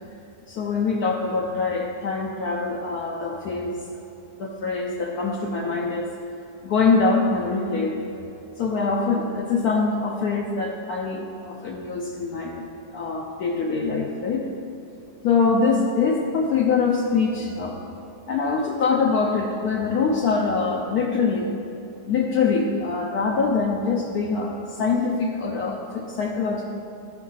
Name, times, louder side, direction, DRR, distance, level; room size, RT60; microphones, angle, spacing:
voice 1, 0.5-3.8 4.4-6.1 6.6-8.0 8.6-12.7 12.9-14.5 15.2-17.8 18.3-21.5 22.1-26.6, left 4 dB, 70° left, -1 dB, 1.1 m, -24 dB
13.0 x 4.4 x 5.5 m, 2.9 s
omnidirectional pair, 1.8 m